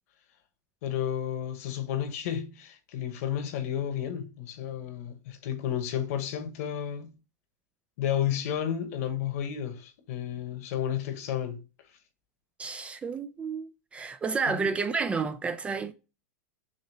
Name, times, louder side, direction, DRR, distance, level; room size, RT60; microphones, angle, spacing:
voice 1, 0.8-7.1 8.0-11.6 14.5-14.7, left 10 dB, 60° left, 1.2 m, -32 dB
voice 2, 12.6-15.9, right 4 dB, 15° right, 0.3 m, -31 dB
6.5 x 2.9 x 2.8 m
supercardioid pair, 140°, 9 cm